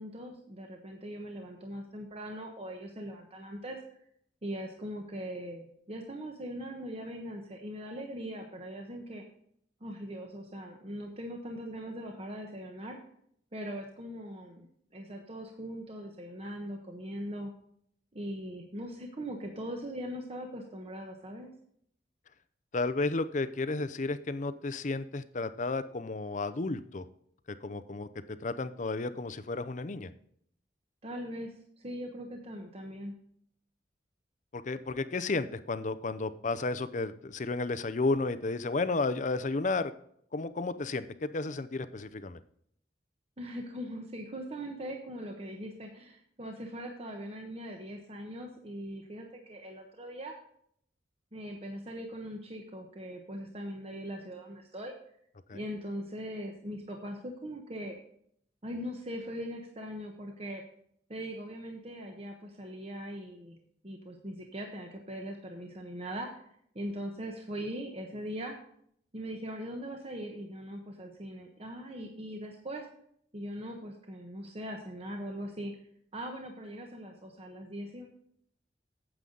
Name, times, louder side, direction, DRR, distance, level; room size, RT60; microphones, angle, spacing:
voice 1, 0.0-3.8 4.4-9.2 9.8-13.0 13.5-14.7 14.9-17.5 18.1-21.5 31.0-33.1 43.4-50.4 51.3-54.9 55.5-58.0 58.6-60.6 61.1-66.5 66.7-68.6 69.1-72.8 73.3-75.7 76.1-78.1, equal, 35° right, 2 dB, 1.1 m, -40 dB
voice 2, 22.7-27.0 27.6-30.1 34.5-39.9 40.3-42.4 55.5-55.6, left 3 dB, 40° left, 13 dB, 0.6 m, -32 dB
9.3 x 7.9 x 3.9 m, 0.67 s
head